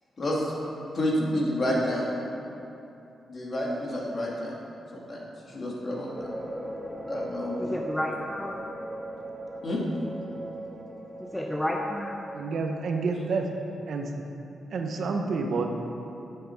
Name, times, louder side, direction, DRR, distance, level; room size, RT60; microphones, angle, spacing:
voice 1, 0.2-0.6 0.9-2.1 3.3-4.5 4.9-6.3 7.1-7.7 9.6-9.8, left 1 dB, 50° left, -4 dB, 2.5 m, -29 dB
sound 1, 6.1-13.6, right 1 dB, 15° right, 1.9 m, -39 dB
voice 2, 7.6-8.6 11.2-12.2, left 1 dB, 10° left, 0 dB, 0.8 m, -31 dB
voice 3, 12.3-13.5 13.9-14.1 14.7-15.7, right 4 dB, 70° right, 3 dB, 1.0 m, -29 dB
10.0 x 7.7 x 4.7 m, 2.9 s
cardioid pair, 70°, 0 cm